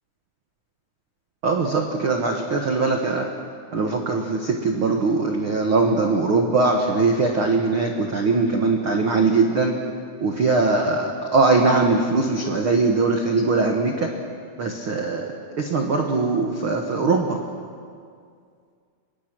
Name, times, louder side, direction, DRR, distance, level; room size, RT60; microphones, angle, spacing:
voice 1, 1.4-3.3 3.7-9.7 10.2-14.1 14.6-17.4, right 3 dB, 90° right, 2 dB, 1.1 m, -21 dB
25.5 x 23.5 x 6.1 m, 2.2 s
omnidirectional pair, 4.8 m